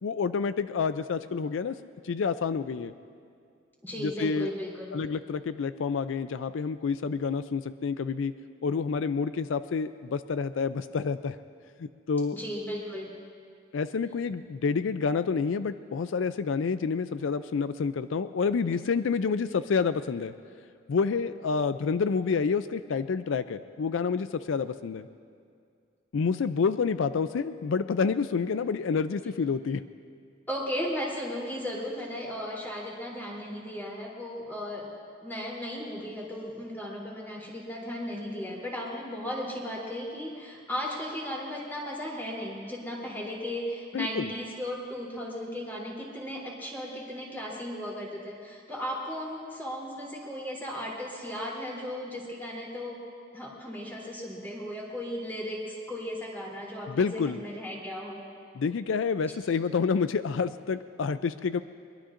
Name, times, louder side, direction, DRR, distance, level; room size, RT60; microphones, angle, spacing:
voice 1, 0.0-1.8 2.0-2.9 4.0-4.5 4.9-8.3 8.6-11.4 11.8-12.4 13.7-20.3 20.9-25.1 26.1-29.8 43.9-44.3 56.9-57.4 58.6-61.6, left 5 dB, 85° left, 12 dB, 0.4 m, -28 dB
voice 2, 3.8-5.0 12.3-13.2 30.5-34.9 35.2-53.0 53.3-58.2, equal, 10° left, -5 dB, 3.2 m, -36 dB
22.5 x 22.5 x 2.6 m, 2.2 s
head